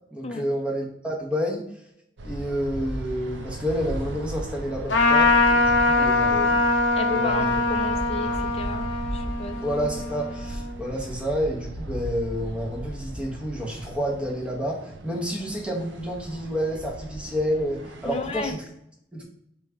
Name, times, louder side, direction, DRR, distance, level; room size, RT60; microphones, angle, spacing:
voice 1, 0.1-1.6 2.2-6.6 7.1-7.6 9.6-18.6 19.1-19.2, equal, 5° right, -2 dB, 0.8 m, -29 dB
sound 1, 2.2-18.5, right 1 dB, 85° right, 0.5 m, -37 dB
Trumpet, 4.9-10.7, left 3 dB, 85° left, 0.6 m, -22 dB
voice 2, 5.9-6.4 7.0-8.9 9.1-9.6 18.0-18.5, left 3 dB, 35° left, 6 dB, 0.4 m, -33 dB
3.4 x 3.1 x 4.5 m, 0.78 s
head